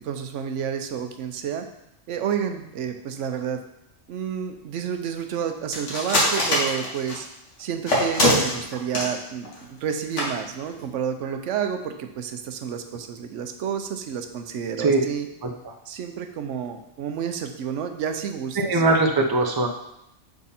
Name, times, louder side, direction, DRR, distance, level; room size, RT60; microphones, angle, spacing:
voice 1, 0.0-1.7 2.1-3.6 4.1-7.3 7.6-15.3 15.9-18.8, right 8 dB, 85° right, 6 dB, 1.0 m, -30 dB
sound 1, 5.7-7.3 7.9-9.1 9.5-9.6 9.9-10.0 10.2-10.3 10.7-10.8, left 1 dB, 85° left, 1.8 m, -22 dB
voice 2, 15.4-15.7 18.6-19.7, right 2 dB, 25° right, 2 dB, 0.5 m, -21 dB
6.7 x 3.6 x 4.2 m, 0.81 s
omnidirectional pair, 1.2 m